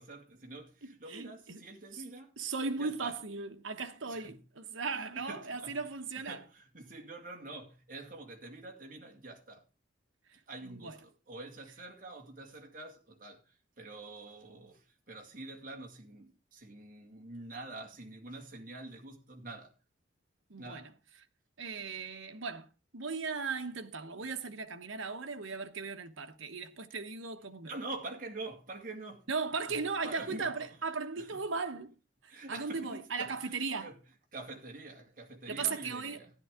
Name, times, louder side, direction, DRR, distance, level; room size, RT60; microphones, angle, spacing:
voice 1, 0.0-2.3 2.8-3.2 4.1-4.3 4.9-5.8 6.2-9.6 10.5-19.7 20.6-20.9 27.6-29.3 29.7-29.8 30.0-30.7 31.2-31.4 32.3-34.0 34.3-36.3, right 2 dB, 45° right, 2.2 m, -46 dB
voice 2, 0.8-1.6 1.9-2.0 2.4-6.4 10.6-11.0 20.5-20.9 21.6-22.7 22.9-27.7 29.3-31.9 32.2-33.9 35.5-36.2, right 4 dB, 90° right, 1.2 m, -37 dB
13.0 x 11.0 x 3.7 m
head